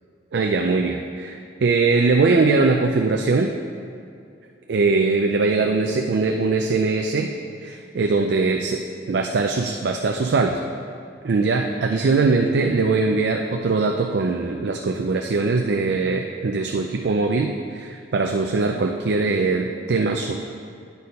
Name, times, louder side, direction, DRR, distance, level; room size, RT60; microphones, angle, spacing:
voice 1, 0.3-3.5 4.7-7.3 7.6-8.8 9.1-10.6 11.2-20.4, right 3 dB, 65° right, 3 dB, 0.4 m, -21 dB
9.5 x 4.3 x 5.3 m, 2.5 s
head